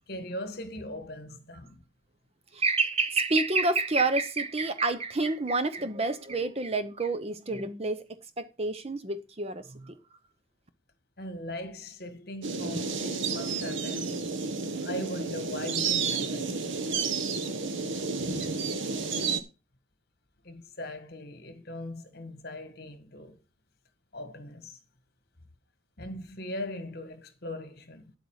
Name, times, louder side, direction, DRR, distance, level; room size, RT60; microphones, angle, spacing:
voice 1, 0.1-1.7 11.2-14.4 14.8-16.6 20.4-23.4 24.1-24.8 26.0-28.1, left 1 dB, 50° left, 1.7 m, -39 dB
voice 2, 2.5-8.1 8.4-9.9, right 3 dB, 30° right, 0.8 m, -28 dB
sound 1, 12.4-19.4, right 4 dB, 70° right, 1.2 m, -31 dB
9.8 x 8.2 x 4.8 m
head